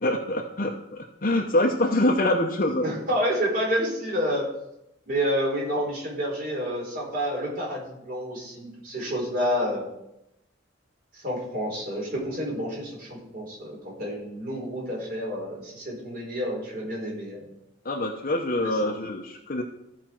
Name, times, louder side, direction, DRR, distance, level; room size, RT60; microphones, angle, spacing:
voice 1, 0.0-2.9 17.8-19.6, left 1 dB, 45° left, 0 dB, 0.8 m, -25 dB
voice 2, 2.8-4.5 5.1-9.9 11.1-17.4 18.6-18.9, equal, 50° right, -4 dB, 4.1 m, -29 dB
14.5 x 5.2 x 4.5 m, 0.85 s
head